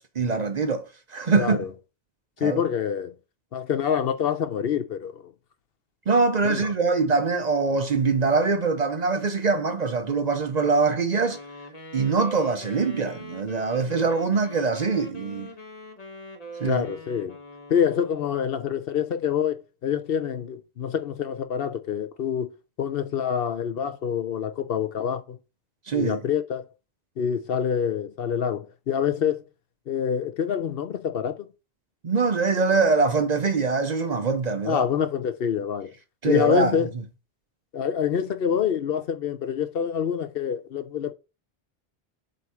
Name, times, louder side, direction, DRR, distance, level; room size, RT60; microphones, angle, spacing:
voice 1, 0.0-1.7 2.4-2.6 6.1-11.4 11.9-15.5 16.6-16.9 25.9-26.3 32.0-34.8 36.2-36.9, right 4 dB, 45° right, 0.7 m, -23 dB
voice 2, 1.3-1.7 2.4-3.1 3.5-5.3 6.4-6.6 16.6-17.4 17.7-22.5 22.8-25.4 25.9-26.6 27.2-29.4 29.9-31.5 34.6-35.9 36.2-36.9 37.7-41.1, left 8 dB, 65° left, 0.9 m, -26 dB
Wind instrument woodwind instrument, 11.2-18.5, equal, 40° left, 1.1 m, -42 dB
7.6 x 2.7 x 4.7 m
omnidirectional pair, 1.1 m